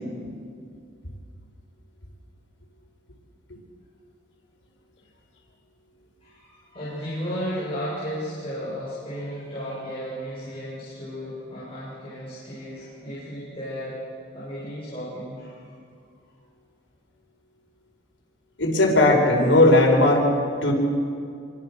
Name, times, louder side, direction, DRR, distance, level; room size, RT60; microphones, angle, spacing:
voice 1, 6.2-14.0 14.3-15.5, equal, 30° left, -10 dB, 7.7 m, -34 dB
voice 2, 18.6-20.3 20.6-20.7, left 2 dB, 80° left, 0 dB, 5.2 m, -17 dB
26.5 x 24.0 x 6.6 m, 2.3 s
head